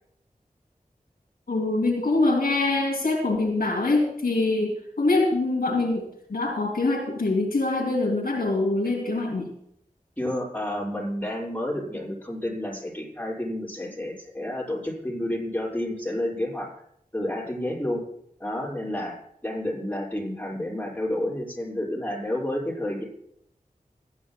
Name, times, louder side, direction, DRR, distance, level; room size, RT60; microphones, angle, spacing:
voice 1, 1.5-9.5, left 2 dB, 80° left, -1 dB, 2.9 m, -24 dB
voice 2, 10.2-16.7 17.1-18.0 18.4-19.2 19.4-23.0, left 1 dB, 10° left, -4 dB, 6.3 m, -30 dB
29.0 x 9.9 x 2.3 m, 0.72 s
wide cardioid pair, 45°, 15 cm